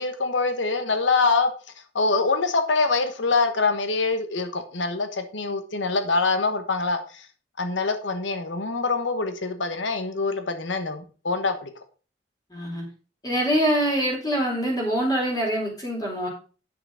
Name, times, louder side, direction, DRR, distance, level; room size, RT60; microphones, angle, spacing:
voice 1, 0.0-1.5 1.9-7.3 7.6-11.7, left 3 dB, 80° left, 8 dB, 1.2 m, -24 dB
voice 2, 12.5-12.8 13.2-16.3, equal, 20° left, -2 dB, 4.1 m, -24 dB
8.8 x 6.7 x 4.9 m, 0.38 s
head